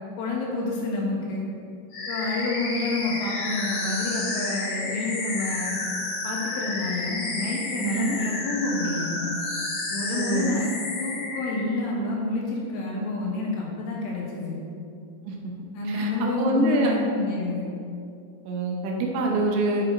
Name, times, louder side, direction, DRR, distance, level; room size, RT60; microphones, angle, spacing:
voice 1, 0.2-1.5 2.1-5.7 6.2-9.4 9.9-10.7 11.0-14.6 15.7-17.7, left 2 dB, 80° left, -3 dB, 3.9 m, -28 dB
sound 1, 1.9-11.6, left 2 dB, 55° left, 3.0 m, -31 dB
voice 2, 7.8-8.1 10.1-10.6 15.3-15.4 15.9-16.9 18.5-19.8, right 2 dB, 80° right, 0 dB, 3.1 m, -25 dB
9.9 x 6.3 x 3.9 m, 2.5 s
omnidirectional pair, 5.4 m